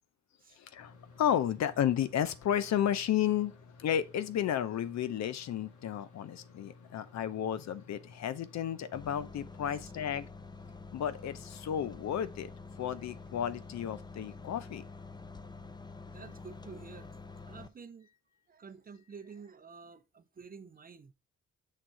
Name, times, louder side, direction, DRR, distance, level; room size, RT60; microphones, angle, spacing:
voice 1, 0.6-10.3 10.9-12.5 12.8-14.8, left 10 dB, 65° left, 0.7 m, -32 dB
sound 1, 0.8-9.0, left 4 dB, 80° left, 1.6 m, -56 dB
sound 2, 8.9-17.7, left 4 dB, 15° left, 0.6 m, -47 dB
voice 2, 16.1-17.1 17.5-18.1 18.5-21.1, right 5 dB, 30° right, 0.6 m, -50 dB
6.6 x 3.7 x 4.5 m
cardioid pair, 90°, 30 cm